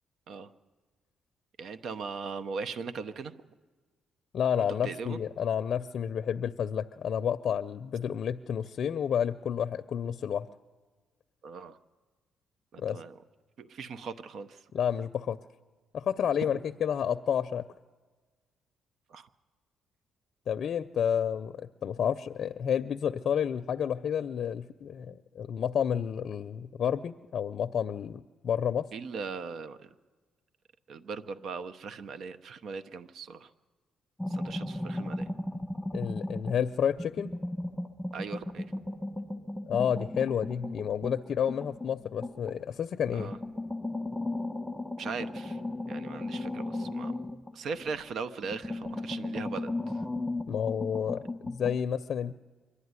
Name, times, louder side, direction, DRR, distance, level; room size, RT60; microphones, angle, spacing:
voice 1, 1.6-3.4 4.8-5.2 11.4-11.8 12.7-13.2 13.6-14.6 16.4-16.5 19.1-19.3 28.9-29.9 30.9-33.5 34.3-35.3 38.1-38.7 43.1-43.4 45.0-45.6 45.9-47.2 47.5-50.0, right 5 dB, 65° right, 12 dB, 0.8 m, -39 dB
voice 2, 4.3-10.5 12.8-13.0 14.7-15.4 15.9-17.7 20.5-28.9 35.9-37.3 39.7-43.3 50.5-52.4, left 8 dB, 60° left, 11 dB, 0.5 m, -30 dB
sound 1, 34.2-36.7 37.0-42.6 43.1-48.1 48.4-51.8, left 2 dB, 5° right, 1.2 m, -36 dB
24.0 x 11.5 x 9.6 m, 1.4 s
cardioid pair, 90°, 0 cm